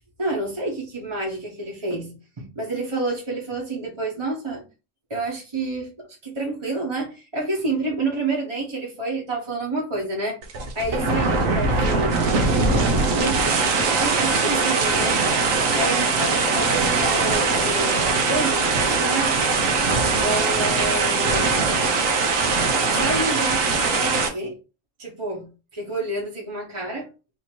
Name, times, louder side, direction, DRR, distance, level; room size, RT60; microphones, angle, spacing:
voice 1, 0.2-4.6 5.1-10.4 10.7-12.2 13.0-13.5 13.9-15.2 15.7-19.3 20.2-21.6 22.9-23.6 23.9-24.6 25.0-25.5 25.7-27.1, right 2 dB, 25° right, -2 dB, 1.0 m, -29 dB
sound 1, 10.4-24.3, right 4 dB, 85° right, 1.2 m, -21 dB
sound 2, 12.1-17.4, right 6 dB, 55° right, 0.7 m, -30 dB
3.5 x 2.8 x 4.4 m, 0.31 s
omnidirectional pair, 1.4 m